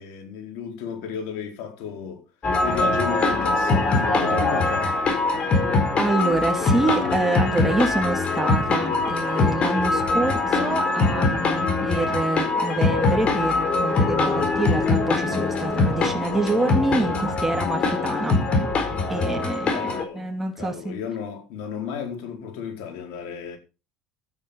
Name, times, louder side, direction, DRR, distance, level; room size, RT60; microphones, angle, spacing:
voice 1, 0.0-2.2 2.6-5.1 19.6-23.6, left 7 dB, 75° left, 4.5 m, -33 dB
sound 1, 2.4-20.0, left 3 dB, 40° left, 4.5 m, -22 dB
voice 2, 6.0-18.3 19.1-21.0, right 2 dB, 10° right, 3.1 m, -26 dB
12.5 x 9.3 x 5.2 m
supercardioid pair, 95°, 3 cm